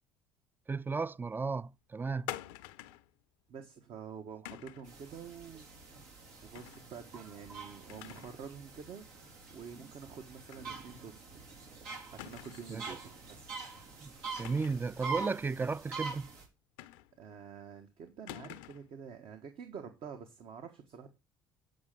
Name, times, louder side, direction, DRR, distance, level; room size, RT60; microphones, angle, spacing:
voice 1, 0.7-2.3 12.7-12.8 14.0-14.1 14.4-16.3, right 4 dB, 20° right, 0.4 m, -34 dB
sound 1, 2.3-3.1 4.5-4.9 6.5-6.9 7.2-7.3 7.9-8.4 8.8-8.9 10.5-10.7 11.0-11.1 12.2-12.8 14.4-14.9 16.8-17.3 18.3-18.9, left 15 dB, 85° left, 0.6 m, -46 dB
voice 2, 3.5-5.7 6.4-9.0 9.5-11.4 12.1-13.6 17.2-21.1, right 6 dB, 60° right, 1.4 m, -48 dB
sound 2, 4.8-16.4, right 5 dB, 85° right, 3.5 m, -45 dB
8.5 x 5.4 x 7.4 m
supercardioid pair, 75°, 10 cm